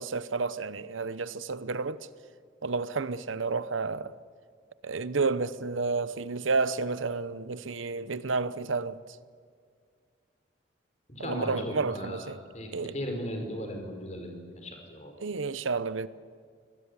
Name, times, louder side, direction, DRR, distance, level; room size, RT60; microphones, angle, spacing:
voice 1, 0.0-2.0 2.6-4.1 4.8-9.0 11.2-12.4 12.7-12.9 15.2-16.1, right 4 dB, 90° right, 0.9 m, -31 dB
voice 2, 11.1-15.2, equal, 35° left, 5.1 m, -37 dB
26.0 x 20.0 x 9.8 m
head